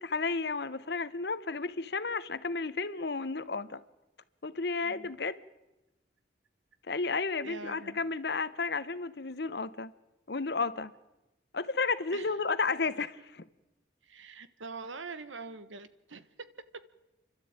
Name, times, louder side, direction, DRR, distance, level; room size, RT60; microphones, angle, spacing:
voice 1, 0.1-3.8 4.4-5.4 6.9-9.9 10.3-10.9 11.5-13.4, left 4 dB, 55° left, 0.9 m, -32 dB
voice 2, 4.8-5.1 7.4-8.0 12.1-12.4 14.0-16.5, right 4 dB, 80° right, 1.2 m, -44 dB
29.5 x 12.5 x 8.8 m
head